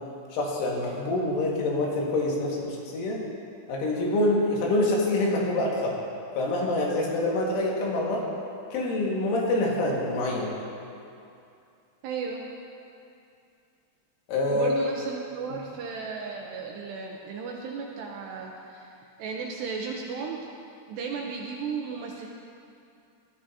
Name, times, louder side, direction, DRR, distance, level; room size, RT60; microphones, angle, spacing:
voice 1, 0.3-3.2 3.7-6.0 6.4-8.2 8.7-10.5 14.3-14.7, left 2 dB, 85° left, -3 dB, 4.2 m, -26 dB
voice 2, 12.0-12.4 14.5-18.9 19.2-20.4 20.9-22.3, right 5 dB, 80° right, 0 dB, 2.5 m, -34 dB
18.0 x 12.5 x 2.7 m, 2.6 s
omnidirectional pair, 5.5 m